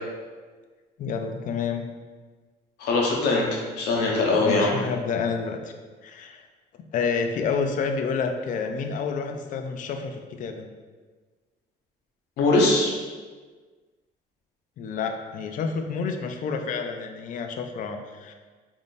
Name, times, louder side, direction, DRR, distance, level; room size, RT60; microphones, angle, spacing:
voice 1, 1.0-1.8 4.4-5.6 6.0-6.4 6.9-10.7 14.8-18.3, left 5 dB, 50° left, 5 dB, 0.4 m, -29 dB
voice 2, 2.8-4.7 12.4-12.9, left 2 dB, 80° left, -2 dB, 0.8 m, -21 dB
3.5 x 2.5 x 2.5 m, 1.4 s
cardioid pair, 110°, 17 cm